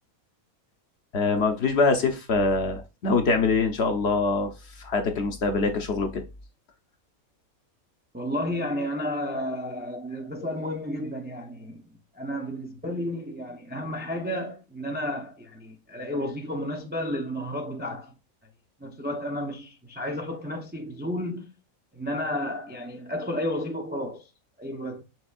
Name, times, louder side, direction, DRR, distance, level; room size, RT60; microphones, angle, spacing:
voice 1, 1.1-4.5 4.8-6.2, left 3 dB, 55° left, 0.9 m, -24 dB
voice 2, 8.1-11.8 12.1-18.2 18.8-21.6 21.9-24.3 24.6-25.0, left 1 dB, 15° right, 0.4 m, -32 dB
5.9 x 3.4 x 2.3 m
omnidirectional pair, 1.5 m